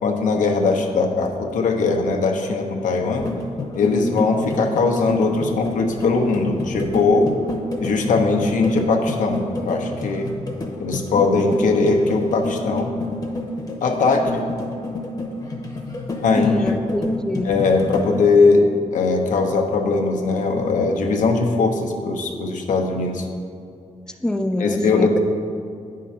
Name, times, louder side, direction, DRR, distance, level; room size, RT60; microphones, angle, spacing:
voice 1, 0.0-3.3 3.7-7.3 7.8-10.3 10.8-12.9 13.8-14.5 16.2-16.8 17.4-23.3 24.6-25.2, left 3 dB, 90° left, 3 dB, 0.8 m, -20 dB
sound 1, 3.2-18.2, left 2 dB, 30° left, 0.8 m, -30 dB
voice 2, 16.4-17.5 24.2-25.2, left 1 dB, 5° left, 7 dB, 0.4 m, -24 dB
9.3 x 3.8 x 5.6 m, 2.4 s
wide cardioid pair, 145°, 13 cm